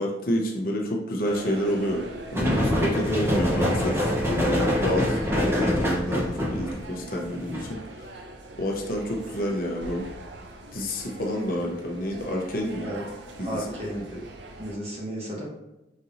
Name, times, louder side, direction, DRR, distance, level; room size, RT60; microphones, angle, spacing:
voice 1, 0.0-2.0 2.3-5.2 5.5-8.1 8.6-10.0 10.7-12.9 13.4-13.7, equal, 55° left, -1 dB, 0.7 m, -29 dB
sound 1, 1.2-14.8, right 2 dB, 85° right, 0.5 m, -41 dB
sound 2, 2.3-7.7, left 1 dB, 15° right, 0.8 m, -25 dB
voice 2, 2.9-3.3 12.8-13.0 13.4-14.1 14.6-15.4, right 1 dB, 35° right, -4 dB, 1.1 m, -33 dB
5.2 x 2.8 x 2.6 m, 0.96 s
head